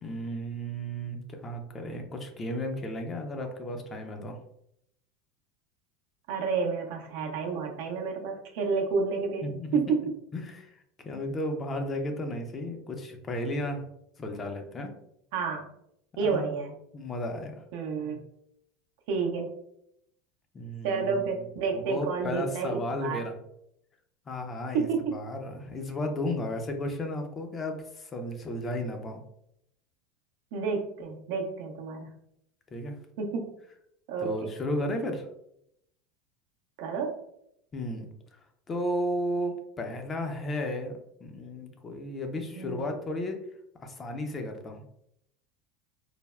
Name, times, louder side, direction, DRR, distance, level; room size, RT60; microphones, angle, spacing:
voice 1, 0.0-4.4 9.4-9.8 10.3-13.9 14.2-14.9 16.2-16.5 16.9-17.6 20.5-21.3 21.7-23.4 24.3-29.2 32.7-33.0 34.2-35.3 37.7-38.4 38.7-43.4 43.8-44.9, left 1 dB, 30° left, 4 dB, 0.5 m, -34 dB
voice 2, 6.3-10.0 15.3-15.6 16.2-16.7 17.7-18.2 19.1-19.5 20.8-23.2 24.7-25.2 30.5-32.1 33.2-33.5 34.1-34.5 36.8-37.1 42.3-42.8, right 5 dB, 70° right, 2 dB, 0.6 m, -30 dB
3.2 x 2.0 x 2.3 m, 0.76 s
hypercardioid pair, 100°, 0 cm